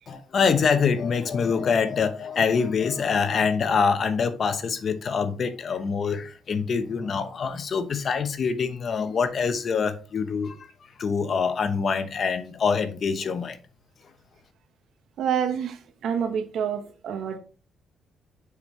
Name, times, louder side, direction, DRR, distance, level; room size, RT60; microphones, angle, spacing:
voice 1, 0.1-10.7 11.0-13.6, left 5 dB, 50° left, 0.9 m, -25 dB
voice 2, 15.2-17.4, right 8 dB, 70° right, 1.1 m, -28 dB
6.8 x 5.2 x 3.2 m
cardioid pair, 90°, 0 cm